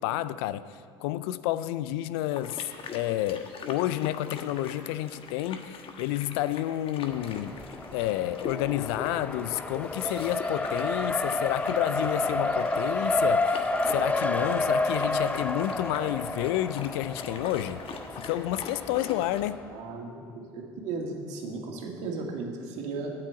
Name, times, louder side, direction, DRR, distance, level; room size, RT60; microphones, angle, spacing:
voice 1, 0.0-2.7 2.9-7.6 7.9-17.8 18.1-19.6, left 14 dB, 65° left, 0.4 m, -30 dB
sound 1, 2.3-19.4, left 5 dB, 40° left, 1.3 m, -43 dB
Race car auto racing, 7.1-19.7, left 2 dB, 10° left, 0.6 m, -30 dB
voice 2, 19.7-23.1, right 3 dB, 60° right, 2.1 m, -36 dB
8.9 x 7.7 x 9.1 m
hypercardioid pair, 70°, 14 cm